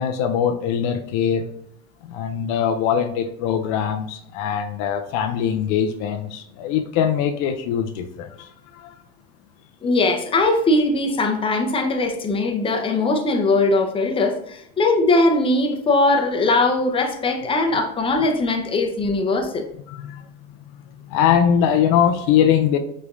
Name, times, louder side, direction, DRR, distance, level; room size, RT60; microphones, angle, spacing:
voice 1, 0.0-1.5 2.0-8.9 19.9-20.2 21.1-22.8, left 8 dB, 60° left, 6 dB, 0.5 m, -22 dB
voice 2, 9.8-19.7, left 2 dB, 15° left, 3 dB, 0.7 m, -20 dB
5.1 x 3.3 x 2.5 m, 0.73 s
supercardioid pair, 115°, 32 cm